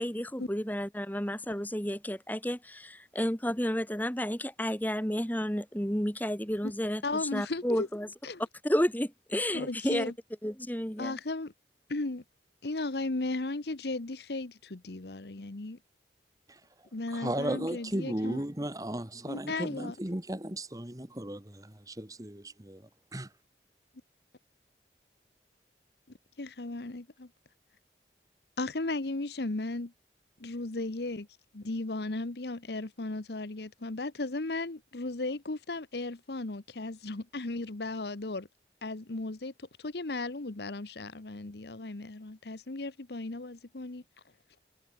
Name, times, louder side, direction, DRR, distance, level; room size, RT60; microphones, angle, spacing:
voice 1, 0.0-8.1 8.6-10.1 10.4-11.2, equal, 10° left, 2.7 m, -31 dB
voice 2, 7.0-7.9 8.2-8.4 9.5-10.1 11.0-11.5 11.9-12.2 12.6-15.8 16.9-18.4 19.3-19.9 26.4-27.3 28.6-29.9 30.4-31.3 31.5-38.5 38.8-44.0, left 2 dB, 70° left, 1.1 m, -35 dB
voice 3, 17.1-22.8 23.1-23.3, right 1 dB, 20° right, 1.6 m, -35 dB
head